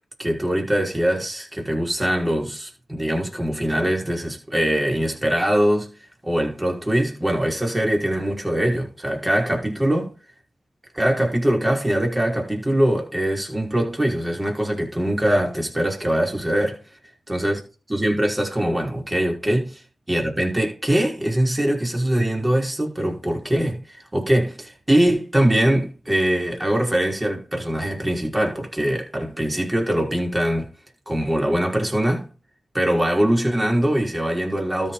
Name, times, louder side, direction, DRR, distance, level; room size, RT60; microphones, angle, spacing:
voice 1, 0.2-2.7 3.0-5.9 6.2-10.1 10.9-16.8 17.3-17.6 17.9-19.7 20.1-30.7 31.1-32.3 32.7-34.9, right 1 dB, 20° right, 5.5 m, -22 dB
13.0 x 6.9 x 4.2 m
cardioid pair, 45°, 0 cm